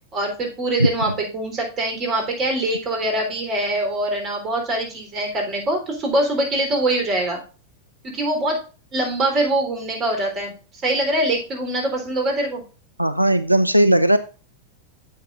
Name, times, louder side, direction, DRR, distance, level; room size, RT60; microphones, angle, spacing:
voice 1, 0.1-7.4 8.0-8.6 8.9-12.6, right 1 dB, 30° right, 2 dB, 3.8 m, -23 dB
voice 2, 13.0-14.2, right 1 dB, 90° right, 13 dB, 0.4 m, -16 dB
9.4 x 8.2 x 2.6 m, 0.35 s
figure-of-eight pair, 90°, 0 cm